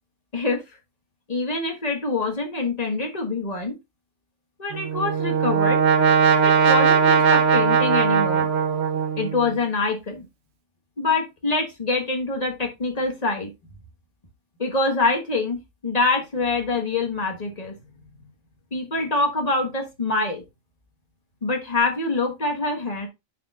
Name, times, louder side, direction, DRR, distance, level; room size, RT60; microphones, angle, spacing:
voice 1, 1.3-3.7 4.6-5.8 6.4-8.5 9.2-10.2 11.0-13.5 14.6-17.8 18.7-20.4 21.4-23.1, left 3 dB, 35° left, 3 dB, 1.4 m, -25 dB
Brass instrument, 4.7-9.5, right 6 dB, 65° right, 1.0 m, -19 dB
9.9 x 4.4 x 2.3 m, 0.22 s
omnidirectional pair, 1.2 m